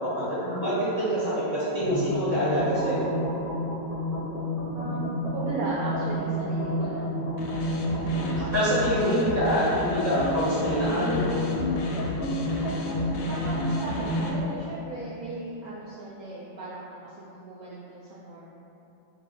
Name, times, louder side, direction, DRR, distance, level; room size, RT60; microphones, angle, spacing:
voice 1, 0.0-3.1 8.2-11.4, equal, 30° left, -12 dB, 0.8 m, -26 dB
sound 1, 1.8-14.5, left 1 dB, 20° right, 0.3 m, -30 dB
voice 2, 4.7-7.1 13.3-18.5, right 2 dB, 70° right, -7 dB, 0.8 m, -36 dB
sound 2, 7.4-14.3, left 2 dB, 85° left, 1.3 m, -35 dB
4.1 x 2.4 x 4.1 m, 3.0 s
omnidirectional pair, 2.0 m